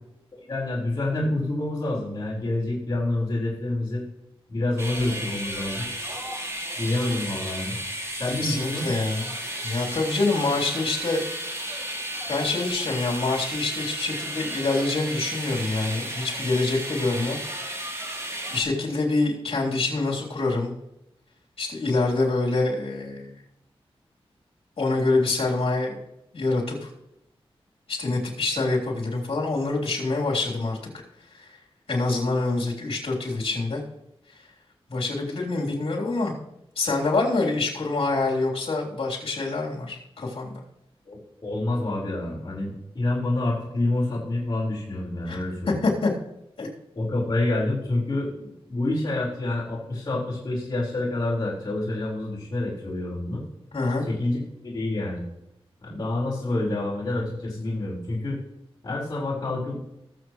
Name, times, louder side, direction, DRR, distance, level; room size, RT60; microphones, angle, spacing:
voice 1, 0.5-4.0 4.5-5.9 6.7-7.8 8.2-8.9 41.1-45.8 46.9-53.4 54.0-55.2 55.8-58.4 58.8-59.8, left 2 dB, 40° left, -7 dB, 4.6 m, -28 dB
sound 1, 4.8-18.6, right 1 dB, 30° right, 3.2 m, -33 dB
voice 2, 8.3-9.3 9.6-11.2 12.3-17.4 18.5-20.7 21.6-23.3 24.8-26.0 26.3-26.9 27.9-31.0 31.3-31.5 31.9-33.8 34.9-36.3 36.7-40.6 45.2-46.1 46.6-46.7 53.7-54.1, left 3 dB, 70° left, -2 dB, 3.4 m, -26 dB
21.5 x 7.4 x 3.2 m, 0.86 s
wide cardioid pair, 85°, 10 cm